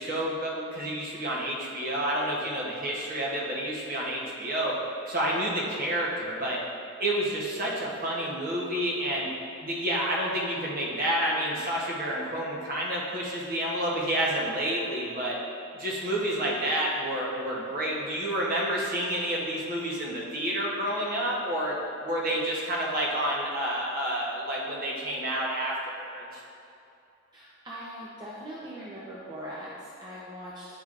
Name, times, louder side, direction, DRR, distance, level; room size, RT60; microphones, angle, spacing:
voice 1, 0.0-4.7 5.1-6.6 7.0-9.3 9.6-15.4 15.7-21.8 22.0-26.4, right 1 dB, 40° right, -4 dB, 0.9 m, -29 dB
voice 2, 27.3-30.7, equal, 20° right, -8 dB, 0.6 m, -41 dB
8.9 x 4.9 x 2.5 m, 2.6 s
head